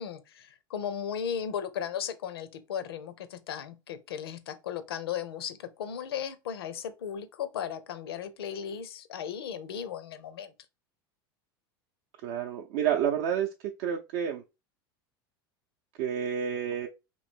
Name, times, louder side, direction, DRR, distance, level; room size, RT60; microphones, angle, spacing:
voice 1, 0.0-10.5, left 8 dB, 85° left, 0.6 m, -36 dB
voice 2, 12.2-13.5 13.8-14.4 16.0-16.9, right 9 dB, 60° right, 0.5 m, -29 dB
3.0 x 2.7 x 4.3 m
hypercardioid pair, 95°, 12 cm